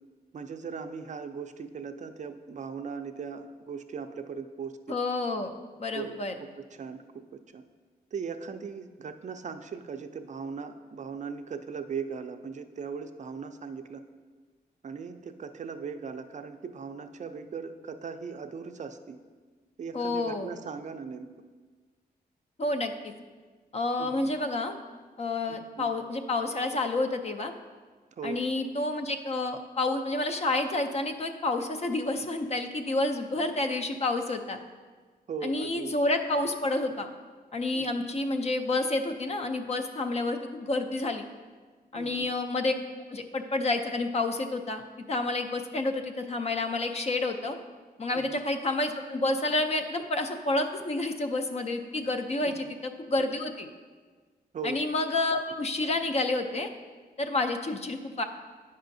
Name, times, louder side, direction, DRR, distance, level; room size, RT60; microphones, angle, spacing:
voice 1, 0.3-5.0 5.9-7.0 7.3-7.6 8.1-14.0 14.8-19.2 19.8-21.3 24.0-24.3 25.5-25.9 28.2-28.4 35.3-35.9 37.7-38.0 41.9-42.3 48.1-48.4 52.4-52.7 54.5-54.8, right 6 dB, 45° right, 8 dB, 0.4 m, -39 dB
voice 2, 4.9-5.5 5.8-6.3 19.9-20.5 22.6-23.1 23.7-24.7 25.2-27.5 28.2-34.6 35.4-37.1 37.5-41.2 41.9-42.7 43.1-44.8 45.1-47.6 48.0-53.7 54.6-56.7 57.2-58.2, left 2 dB, 40° left, 6 dB, 0.5 m, -29 dB
8.7 x 5.5 x 2.6 m, 1.4 s
wide cardioid pair, 100°, 17 cm